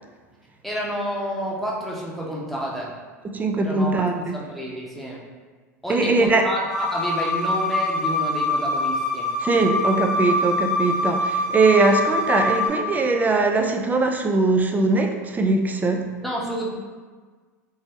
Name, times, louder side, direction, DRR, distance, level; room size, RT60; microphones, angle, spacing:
voice 1, 0.6-2.9 3.6-5.2 5.8-9.3 16.2-16.7, equal, ahead, -5 dB, 0.9 m, -29 dB
voice 2, 3.2-4.4 5.9-6.4 9.4-16.1, right 3 dB, 20° right, 4 dB, 0.4 m, -21 dB
sound 1, 6.7-12.7, left 2 dB, 85° right, 1.2 m, -24 dB
3.4 x 3.0 x 2.9 m, 1.4 s
hypercardioid pair, 85°, 9 cm